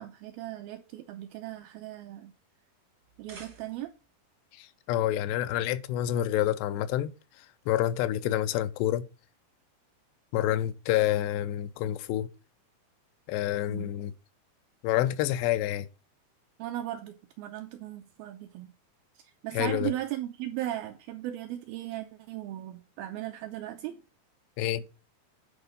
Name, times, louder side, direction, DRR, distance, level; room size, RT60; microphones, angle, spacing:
voice 1, 0.0-2.3 3.2-3.9 13.7-13.9 16.6-18.7 19.4-24.0, right 13 dB, 85° right, 2.2 m, -37 dB
sound 1, 3.0-4.1, right 3 dB, 55° right, 1.1 m, -51 dB
voice 2, 4.6-7.1 7.7-9.1 10.3-12.3 13.3-14.1 14.8-15.9 19.5-19.9 24.6-24.8, left 12 dB, 85° left, 2.7 m, -28 dB
10.0 x 3.6 x 5.4 m
omnidirectional pair, 4.8 m